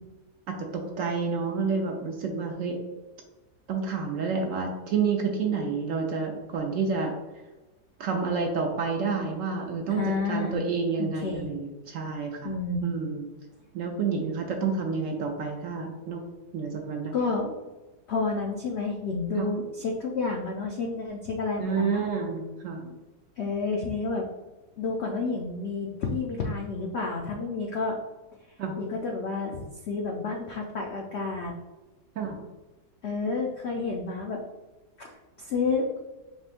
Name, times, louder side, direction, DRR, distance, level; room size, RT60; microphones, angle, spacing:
voice 1, 0.5-2.8 3.7-7.1 8.0-10.0 10.3-12.5 12.8-13.3 13.7-16.2 16.5-17.1 19.4-19.5 21.6-23.0 28.6-28.8 32.2-32.4, right 5 dB, 65° right, 2 dB, 0.8 m, -29 dB
voice 2, 9.9-10.7 11.0-11.5 12.4-12.8 17.1-17.5 18.1-22.1 23.4-24.3 24.8-28.0 28.8-31.5 33.0-34.4 35.0-36.0, left 3 dB, 85° left, 0 dB, 0.5 m, -30 dB
5.3 x 3.5 x 2.5 m, 1.1 s
omnidirectional pair, 1.8 m